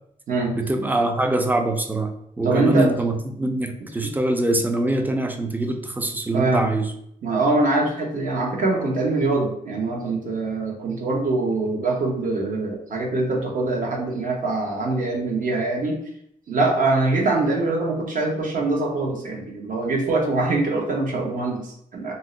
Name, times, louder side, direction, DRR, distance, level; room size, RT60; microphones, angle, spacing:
voice 1, 0.5-2.1 2.4-6.9, right 1 dB, 10° right, 5 dB, 0.4 m, -23 dB
voice 2, 2.4-2.9 4.0-4.1 6.3-6.7 7.2-16.0 16.5-22.1, right 2 dB, 60° right, 0 dB, 0.9 m, -23 dB
2.7 x 2.1 x 3.7 m, 0.72 s
cardioid pair, 105°, 16 cm